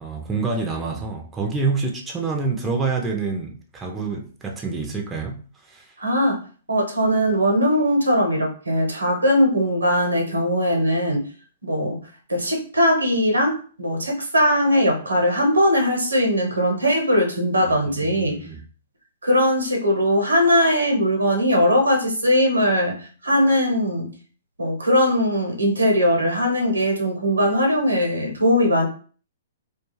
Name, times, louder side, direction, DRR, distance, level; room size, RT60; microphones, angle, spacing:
voice 1, 0.0-5.4 5.7-5.9 17.6-18.6, right 4 dB, 15° right, 0.5 m, -27 dB
voice 2, 6.0-6.4 6.7-11.2 11.6-12.0 12.3-18.4 19.2-24.1 24.6-28.9, equal, 90° right, 0.8 m, -20 dB
2.3 x 2.3 x 3.1 m
figure-of-eight pair, 120°, 0 cm